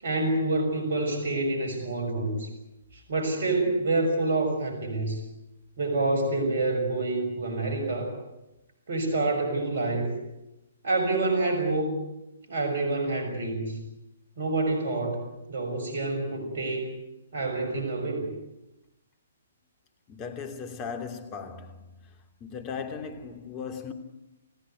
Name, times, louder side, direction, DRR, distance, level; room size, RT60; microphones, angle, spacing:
voice 1, 0.0-2.5 3.1-5.2 5.8-8.1 8.9-10.1 10.8-12.0 12.5-13.8 14.4-15.2 15.5-16.9 17.3-18.3, right 2 dB, 60° right, 6.3 m, -27 dB
voice 2, 20.1-22.0 22.4-23.9, left 6 dB, 25° left, 3.1 m, -37 dB
29.5 x 15.5 x 9.3 m
figure-of-eight pair, 130°, 0 cm